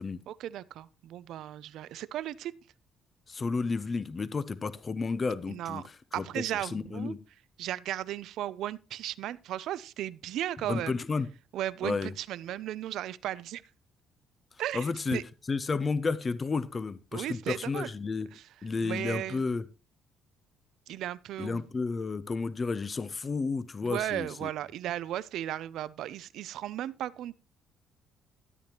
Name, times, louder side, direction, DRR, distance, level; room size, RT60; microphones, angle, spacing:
voice 1, 0.3-2.5 5.5-5.8 6.1-7.1 7.6-10.9 11.5-13.6 14.6-15.2 17.1-17.9 18.3-18.5 18.8-19.4 20.9-21.6 23.8-27.3, right 12 dB, 75° right, 0.5 m, -35 dB
voice 2, 3.3-5.8 6.2-6.4 6.7-7.2 10.7-11.3 11.8-12.1 14.7-15.2 15.5-18.3 18.6-19.6 21.4-24.5, left 4 dB, 30° left, 0.5 m, -31 dB
13.5 x 8.6 x 2.9 m
cardioid pair, 125°, 0 cm